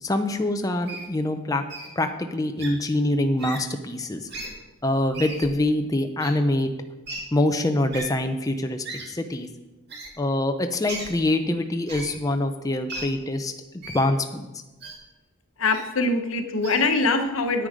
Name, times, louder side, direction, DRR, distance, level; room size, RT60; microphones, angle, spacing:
voice 1, 0.0-1.6 2.0-4.3 4.8-6.7 7.3-9.5 10.2-13.5 13.9-14.5, left 1 dB, 15° left, 6 dB, 0.6 m, -25 dB
Wild animals, 0.9-1.1 1.7-1.9 2.6-2.7 3.4-3.6 4.3-4.5 5.1-5.5 6.2-6.3 7.0-7.2 7.9-8.0 8.8-9.0 9.9-10.1 10.9-11.1 11.9-12.1 12.9-13.0 13.8-14.0 14.8-14.9 15.7-15.8 16.6-16.8, right 2 dB, 50° right, 1.9 m, -36 dB
voice 2, 15.6-17.7, left 3 dB, 80° left, 6 dB, 1.1 m, -23 dB
10.0 x 9.1 x 5.0 m, 1.1 s
head